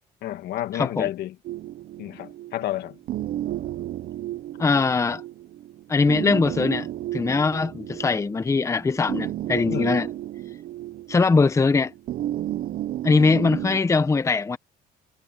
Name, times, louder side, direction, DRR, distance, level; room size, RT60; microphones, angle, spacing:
voice 1, 0.2-1.4 2.0-3.0 9.7-10.0, left 13 dB, 75° left, 1.9 m, -30 dB
voice 2, 0.7-1.1 4.6-5.2 5.9-6.9 7.1-10.1 11.1-11.9 13.0-14.6, left 4 dB, 15° left, 0.7 m, -21 dB
sound 1, 1.4-13.8, right 13 dB, 60° right, 0.7 m, -33 dB
cardioid pair, 110°, 17 cm